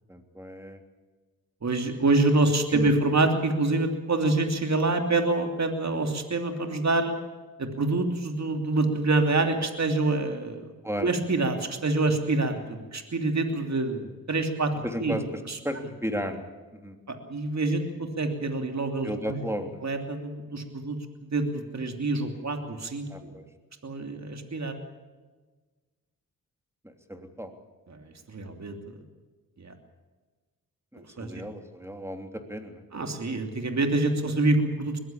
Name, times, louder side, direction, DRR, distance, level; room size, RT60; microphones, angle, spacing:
voice 1, 0.1-0.8 2.7-2.9 10.8-11.1 14.8-17.0 19.0-19.8 23.1-23.4 26.8-27.5 30.9-32.8, equal, 5° right, 5 dB, 3.3 m, -35 dB
voice 2, 1.6-7.1 7.6-10.7 11.0-15.1 15.5-15.6 17.1-19.4 19.8-23.4 23.8-24.8 27.9-28.7 29.6-29.7 31.0-31.3 32.9-35.0, right 2 dB, 50° right, 5 dB, 3.0 m, -26 dB
21.0 x 15.0 x 8.7 m, 1.3 s
cardioid pair, 50°, 35 cm